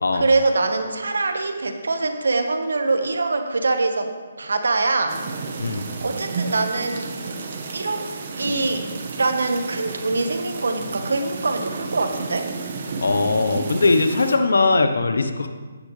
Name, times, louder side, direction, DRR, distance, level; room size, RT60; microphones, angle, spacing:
voice 1, 0.1-4.1 4.4-5.2 6.0-7.1 7.7-8.9 9.2-12.5, right 3 dB, 85° right, 6 dB, 1.5 m, -23 dB
sound 1, 5.1-14.4, right 4 dB, 45° right, 1.6 m, -32 dB
voice 2, 13.0-15.5, left 3 dB, 85° left, 7 dB, 1.1 m, -20 dB
15.5 x 10.5 x 3.4 m, 1.4 s
hypercardioid pair, 160°, 0 cm